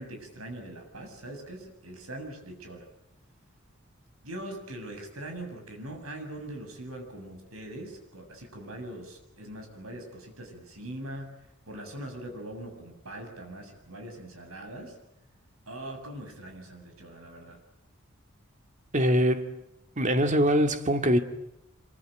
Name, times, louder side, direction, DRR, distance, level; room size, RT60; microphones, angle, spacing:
voice 1, 0.0-2.9 4.2-11.4 11.7-15.0 15.7-17.6, right 1 dB, 85° right, 7.5 m, -42 dB
voice 2, 18.9-19.6 20.0-21.2, equal, 35° right, 2.1 m, -23 dB
26.0 x 24.0 x 9.2 m
head